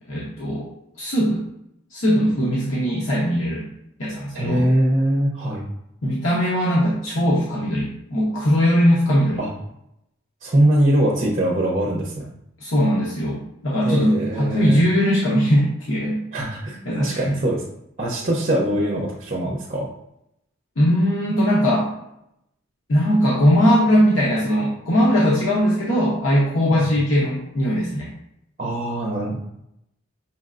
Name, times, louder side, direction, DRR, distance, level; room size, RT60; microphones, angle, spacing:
voice 1, 0.1-0.7 1.0-1.4 1.9-3.7 4.0-4.6 6.0-9.4 12.6-16.2 16.9-17.2 20.8-21.9 22.9-28.1, equal, 75° left, -5 dB, 0.9 m, -20 dB
voice 2, 4.3-5.6 9.4-9.5 10.4-12.3 13.8-14.8 16.3-17.6 18.0-19.9 26.7-26.8 28.6-29.5, right 1 dB, 35° right, -1 dB, 0.7 m, -22 dB
5.8 x 3.1 x 2.5 m, 0.79 s
head